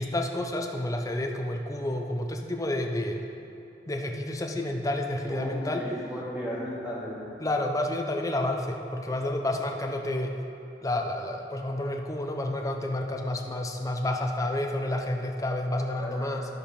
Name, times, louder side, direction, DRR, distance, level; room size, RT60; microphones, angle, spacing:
voice 1, 0.0-3.2 3.9-5.9 7.4-10.4 10.8-16.6, left 1 dB, 20° left, 3 dB, 0.6 m, -30 dB
voice 2, 5.3-7.2 16.0-16.3, equal, 10° right, -8 dB, 2.4 m, -35 dB
12.5 x 5.0 x 5.3 m, 2.8 s
head